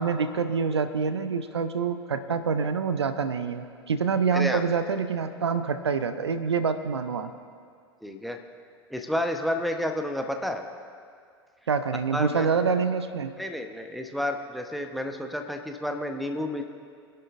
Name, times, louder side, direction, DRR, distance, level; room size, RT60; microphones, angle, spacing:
voice 1, 0.0-7.3 11.7-13.3, right 5 dB, 75° right, 11 dB, 0.7 m, -26 dB
voice 2, 4.3-4.7 8.0-8.4 8.9-10.6 12.1-12.6 13.4-16.6, left 1 dB, ahead, 5 dB, 1.0 m, -30 dB
25.5 x 11.0 x 2.6 m, 2.2 s
figure-of-eight pair, 80°, 14 cm